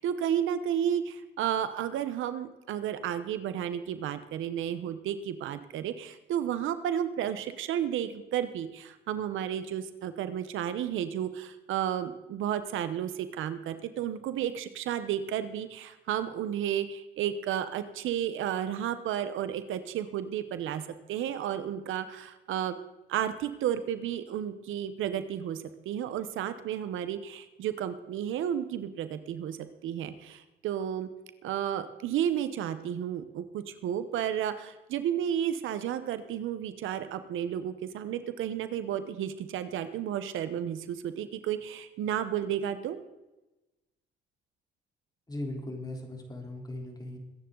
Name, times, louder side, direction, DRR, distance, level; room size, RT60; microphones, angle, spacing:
voice 1, 0.0-20.8 21.1-22.7 23.1-31.1 31.4-43.0, right 10 dB, 85° right, 12 dB, 1.0 m, -32 dB
voice 2, 45.3-47.2, left 1 dB, 20° left, 1 dB, 3.7 m, -38 dB
22.0 x 9.7 x 3.9 m, 1.0 s
cardioid pair, 90°, 20 cm